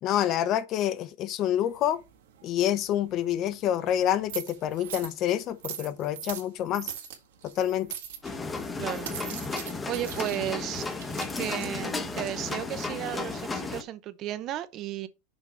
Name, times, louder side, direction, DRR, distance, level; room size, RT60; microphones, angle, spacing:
voice 1, 0.0-2.0 2.4-6.9 7.6-7.9, left 11 dB, 35° left, 0.7 m, -27 dB
sound 1, 1.6-13.7, right 9 dB, 90° right, 1.9 m, -43 dB
sound 2, 8.2-13.8, left 3 dB, 10° left, 0.8 m, -34 dB
voice 2, 8.8-9.1 9.9-10.8 11.4-15.1, right 12 dB, 35° right, 0.7 m, -34 dB
6.1 x 5.2 x 4.5 m
supercardioid pair, 160°, 0 cm